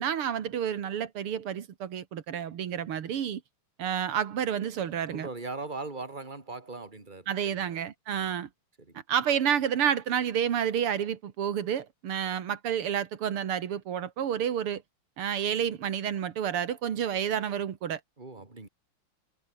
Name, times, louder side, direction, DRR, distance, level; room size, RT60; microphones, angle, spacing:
voice 1, 0.0-3.4 3.8-5.3 7.3-8.5 9.1-14.8 15.2-18.0, right 9 dB, 85° right, 2.5 m, -30 dB
voice 2, 5.1-7.7 8.2-8.3 8.8-9.0 18.2-18.7, right 3 dB, 20° right, 3.5 m, -40 dB
omnidirectional pair, 2.4 m